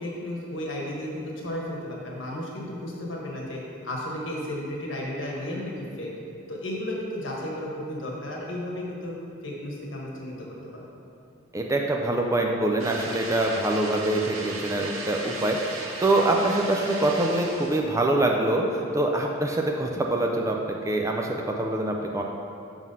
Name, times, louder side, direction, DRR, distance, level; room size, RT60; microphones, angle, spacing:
voice 1, 0.0-6.1 6.5-9.1 9.4-10.5 10.7-10.8, left 1 dB, 70° left, -3 dB, 1.3 m, -33 dB
voice 2, 11.5-22.2, right 1 dB, 15° right, 1 dB, 0.3 m, -25 dB
sound 1, 12.8-17.8, right 2 dB, 80° right, 0.7 m, -36 dB
6.1 x 3.9 x 5.4 m, 2.6 s
head